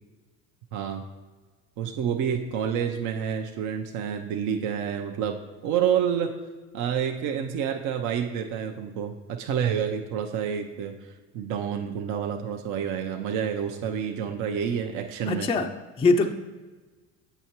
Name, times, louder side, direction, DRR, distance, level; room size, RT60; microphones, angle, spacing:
voice 1, 0.7-1.0 1.8-5.4 5.6-6.3 6.7-15.5, right 8 dB, 55° right, 3 dB, 0.6 m, -28 dB
voice 2, 15.3-15.7 16.0-16.3, left 3 dB, 15° left, 6 dB, 0.4 m, -22 dB
7.9 x 5.6 x 3.0 m, 1.3 s
hypercardioid pair, 75°, 36 cm